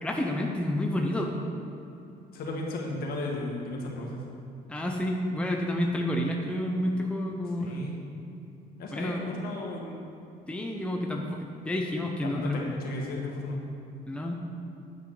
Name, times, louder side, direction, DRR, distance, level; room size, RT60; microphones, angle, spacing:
voice 1, 0.0-1.3 4.7-7.8 8.9-9.3 10.5-12.7 14.1-14.3, left 1 dB, 5° left, 1 dB, 0.8 m, -30 dB
voice 2, 2.3-4.2 7.6-7.9 8.8-10.0 12.2-13.6, left 2 dB, 65° left, -1 dB, 1.7 m, -34 dB
9.1 x 7.9 x 3.9 m, 2.7 s
cardioid pair, 110°, 17 cm